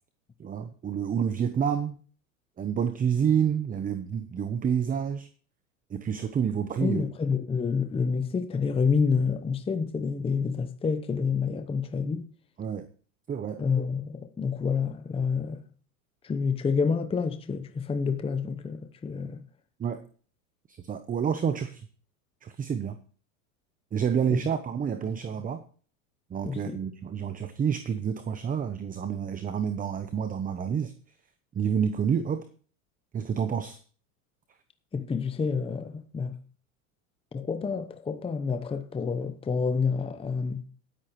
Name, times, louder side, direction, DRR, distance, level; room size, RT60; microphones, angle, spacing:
voice 1, 0.4-2.0 2.6-5.3 5.9-7.0 12.6-12.9 13.3-13.6 19.8-20.0 20.7-21.9 22.4-23.0 23.9-25.6 26.3-30.9 31.5-32.5 33.1-33.8, right 7 dB, 20° right, 0.8 m, -28 dB
voice 2, 6.8-12.3 13.6-15.6 16.2-19.4 24.3-24.4 26.4-26.8 34.9-36.4 37.3-40.6, left 5 dB, 15° left, 0.8 m, -28 dB
18.5 x 8.6 x 3.1 m
hypercardioid pair, 105°, 43 cm